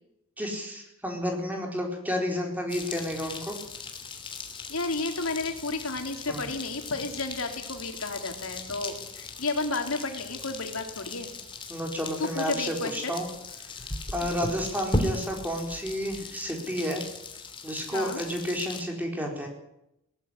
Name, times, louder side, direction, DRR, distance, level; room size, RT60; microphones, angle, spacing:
voice 1, 0.4-3.6 6.3-6.4 11.7-13.3 13.6-13.7 14.1-17.0 17.6-19.5, equal, 10° right, 2 dB, 4.2 m, -31 dB
sound 1, 2.7-18.8, left 2 dB, 25° left, 2.9 m, -38 dB
voice 2, 4.7-11.3 12.2-13.1 14.2-14.4 17.9-18.2, left 3 dB, 85° left, 5 dB, 3.4 m, -32 dB
19.5 x 14.5 x 9.8 m, 0.84 s
head